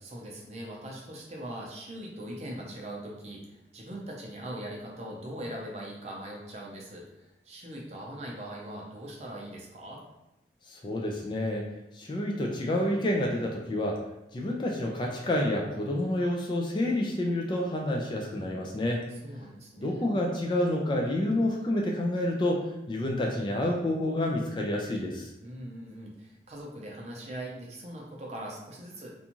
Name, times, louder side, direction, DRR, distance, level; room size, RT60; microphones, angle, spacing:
voice 1, 0.0-10.0 19.2-20.1 25.4-29.2, right 1 dB, 40° right, -2 dB, 0.6 m, -41 dB
voice 2, 10.7-11.7 11.9-14.0 14.3-19.0 19.8-25.3, left 1 dB, 25° left, 0 dB, 0.3 m, -29 dB
2.5 x 2.3 x 2.9 m, 0.91 s
head